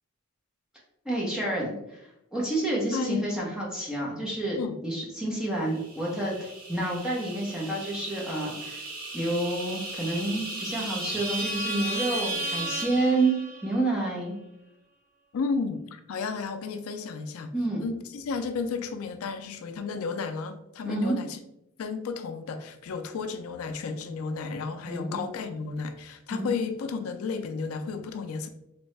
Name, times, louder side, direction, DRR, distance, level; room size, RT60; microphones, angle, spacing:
voice 1, 1.0-4.6 4.8-8.8 9.1-14.3 17.5-17.8 20.8-21.2 24.9-25.2 26.3-26.5, right 2 dB, 5° right, -4 dB, 0.9 m, -29 dB
voice 2, 2.9-3.3 4.6-4.8 15.3-17.5 17.8-21.4 21.8-28.5, left 5 dB, 80° left, 8 dB, 0.4 m, -33 dB
sound 1, 5.8-13.8, right 1 dB, 40° right, 1.0 m, -35 dB
3.5 x 3.2 x 3.2 m, 0.84 s
head